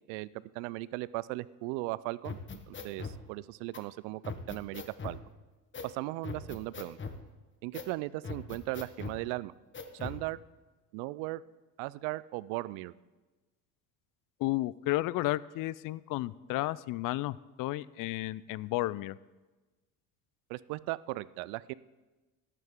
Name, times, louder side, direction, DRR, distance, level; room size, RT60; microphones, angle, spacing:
voice 1, 0.1-2.4 2.7-5.2 5.8-7.0 7.6-9.5 9.9-10.4 10.9-11.4 11.8-12.9 20.5-21.7, right 20 dB, 65° right, 19 dB, 0.6 m, -37 dB
sound 1, 2.2-3.2 3.7-3.8 4.2-5.2 5.7-5.9 6.2-7.2 7.7-7.9 8.2-9.2 9.7-10.2, left 4 dB, 25° left, 1.3 m, -40 dB
voice 2, 14.4-19.2, left 17 dB, 45° left, 20 dB, 0.4 m, -32 dB
14.0 x 11.0 x 3.7 m, 1.2 s
hypercardioid pair, 70°, 47 cm